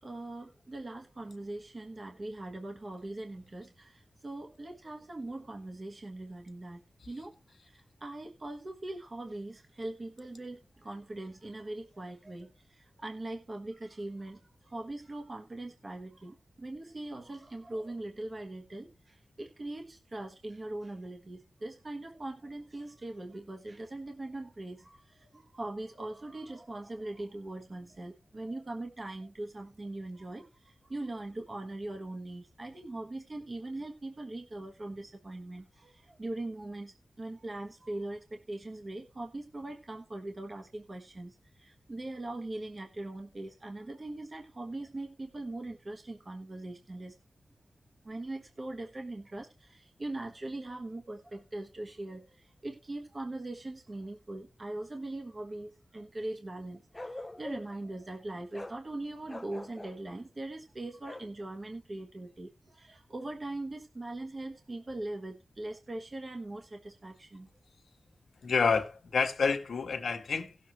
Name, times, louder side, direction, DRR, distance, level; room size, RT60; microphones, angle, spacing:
voice 1, 0.0-47.2 48.0-67.5, right 2 dB, 35° right, 1.3 m, -41 dB
Bark, 56.9-57.8 58.5-58.8 59.3-60.0 61.0-61.3, left 1 dB, 15° left, 0.6 m, -44 dB
voice 2, 68.4-70.6, left 5 dB, 85° left, 1.4 m, -28 dB
18.0 x 7.2 x 3.0 m
wide cardioid pair, 145°, 0 cm